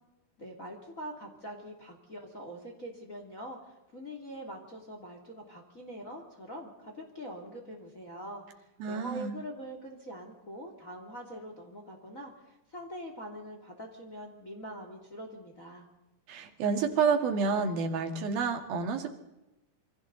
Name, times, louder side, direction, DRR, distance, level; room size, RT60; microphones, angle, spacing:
voice 1, 0.4-15.9, equal, 25° left, 2 dB, 2.7 m, -44 dB
voice 2, 8.8-9.4 16.3-19.1, right 5 dB, 65° right, 5 dB, 3.9 m, -29 dB
28.0 x 24.5 x 4.1 m, 0.96 s
omnidirectional pair, 4.7 m